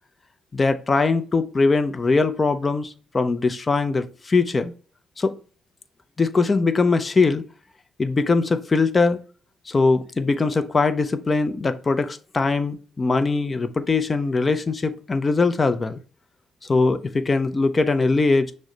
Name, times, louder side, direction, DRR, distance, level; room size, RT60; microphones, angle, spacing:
voice 1, 0.5-4.7 5.2-5.3 6.2-7.5 8.0-9.2 9.7-16.0 16.7-18.5, left 3 dB, 30° left, 0.6 m, -21 dB
6.2 x 2.2 x 3.9 m
cardioid pair, 90°, 0 cm